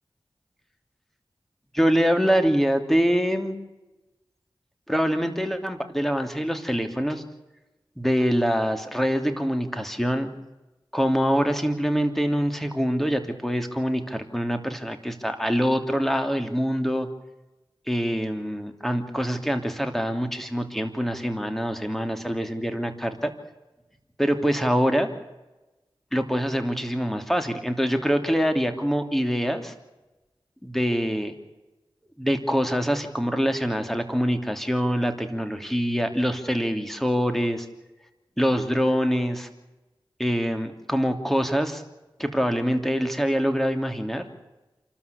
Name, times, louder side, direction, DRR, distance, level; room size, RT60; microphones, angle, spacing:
voice 1, 1.7-3.6 4.9-7.2 8.0-10.3 10.9-17.1 17.9-23.3 24.2-25.1 26.1-29.7 30.6-31.3 32.2-37.7 38.4-39.5 40.2-41.8 42.2-44.3, equal, 5° left, 7 dB, 3.0 m, -24 dB
28.0 x 13.0 x 8.3 m, 1.1 s
wide cardioid pair, 45°, 10 cm